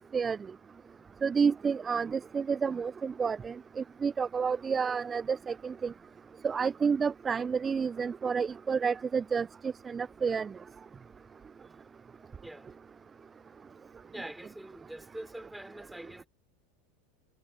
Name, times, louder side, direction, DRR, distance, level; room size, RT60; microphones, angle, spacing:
voice 1, 1.2-3.5 4.0-5.9 6.4-10.5, right 6 dB, 20° right, 0.7 m, -30 dB
voice 2, 14.1-16.3, right 1 dB, 5° right, 5.6 m, -44 dB
figure-of-eight pair, 80°, 0 cm